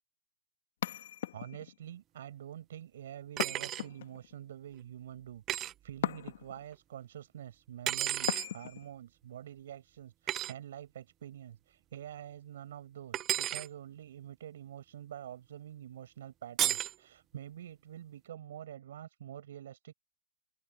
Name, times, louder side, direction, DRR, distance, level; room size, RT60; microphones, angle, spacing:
sound 1, 0.8-1.8 3.4-4.4 6.0-6.7 8.3-8.9, left 12 dB, 65° left, 1.8 m, -38 dB
voice 1, 1.3-19.9, right 11 dB, 70° right, 7.5 m, -47 dB
sound 2, 3.4-3.9 5.5-5.7 7.9-8.5 10.3-10.5 13.1-13.7 16.6-16.9, right 12 dB, 30° right, 0.3 m, -32 dB
open air
hypercardioid pair, 125°, 0 cm